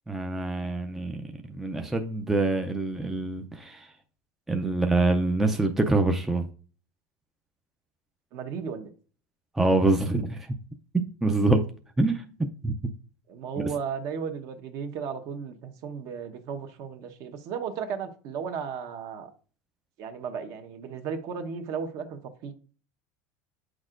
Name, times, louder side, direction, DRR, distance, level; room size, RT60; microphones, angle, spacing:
voice 1, 0.1-1.2 1.6-3.9 4.5-6.5 9.6-10.5 10.9-11.6 12.0-12.3 12.6-12.7, right 2 dB, 5° right, 0.4 m, -25 dB
voice 2, 8.3-8.9 13.3-19.3 20.0-22.5, right 6 dB, 50° right, 1.0 m, -35 dB
8.9 x 6.2 x 2.5 m
supercardioid pair, 155°, 7 cm